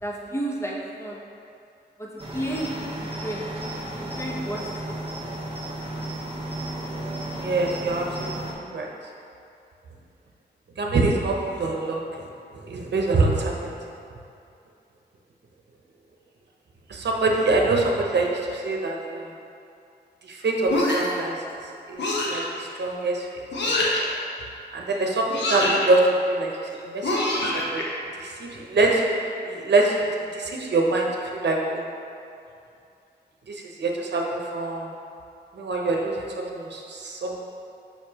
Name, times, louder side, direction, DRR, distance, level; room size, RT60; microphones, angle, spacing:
voice 1, 0.0-1.2 2.0-3.4 3.8-5.0, right 1 dB, 15° left, -3 dB, 0.9 m, -32 dB
Cricket, 2.2-8.5, right 1 dB, 30° right, 1.0 m, -33 dB
voice 2, 7.4-8.9 10.8-12.3 12.5-13.8 16.9-19.3 20.2-21.4 21.9-23.3 23.6-23.7 24.7-26.5 26.8-27.2 27.5-27.8 28.1-29.9 30.3-31.9 33.5-34.9 35.5-37.4, right 2 dB, 75° right, -1 dB, 0.9 m, -25 dB
sound 1, 20.7-21.2 22.0-22.4 23.5-24.1 25.3-25.9 27.0-27.8, left 1 dB, 80° left, 1.0 m, -24 dB
6.7 x 5.6 x 2.9 m, 2.6 s
wide cardioid pair, 100°, 18 cm